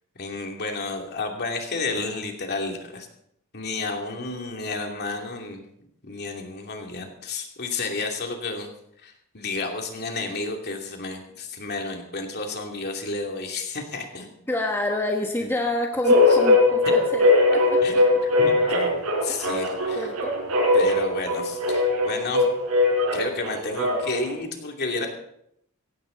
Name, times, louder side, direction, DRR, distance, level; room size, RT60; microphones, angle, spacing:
voice 1, 0.2-3.1 3.5-5.6 6.0-8.7 9.0-14.3 15.4-15.5 16.3-16.4 17.8-20.1 20.7-22.5 23.1-25.1, left 3 dB, 50° left, 2 dB, 2.7 m, -31 dB
voice 2, 14.5-17.3 17.7-17.8 19.9-20.3, left 1 dB, 10° left, 1 dB, 1.3 m, -27 dB
sound 1, 16.0-24.3, left 2 dB, 80° right, 5.1 m, -20 dB
16.5 x 16.0 x 3.9 m, 0.73 s
head